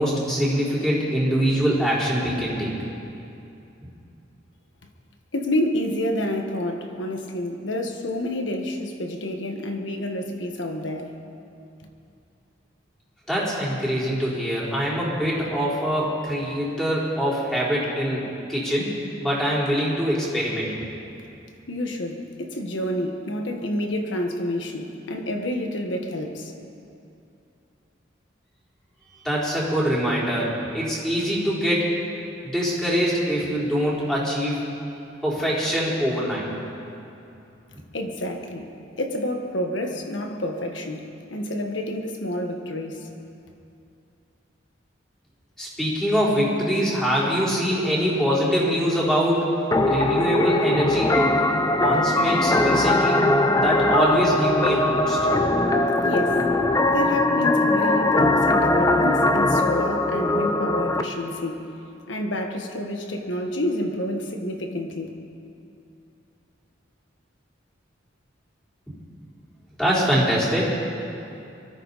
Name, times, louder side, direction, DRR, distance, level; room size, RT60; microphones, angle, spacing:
voice 1, 0.0-2.7 13.3-18.2 18.5-18.9 19.2-20.7 29.1-31.9 32.5-34.7 35.2-36.5 45.6-49.5 49.9-51.4 51.7-53.2 53.6-55.3 69.8-70.9, equal, ahead, -8 dB, 4.2 m, -23 dB
voice 2, 5.3-11.1 21.7-26.5 37.7-38.7 39.0-43.1 56.0-56.4 56.9-61.7 62.1-65.1, left 1 dB, 75° left, 3 dB, 1.4 m, -29 dB
sound 1, 49.7-61.0, left 2 dB, 20° left, 0.7 m, -21 dB
24.0 x 13.5 x 4.1 m, 2.7 s
head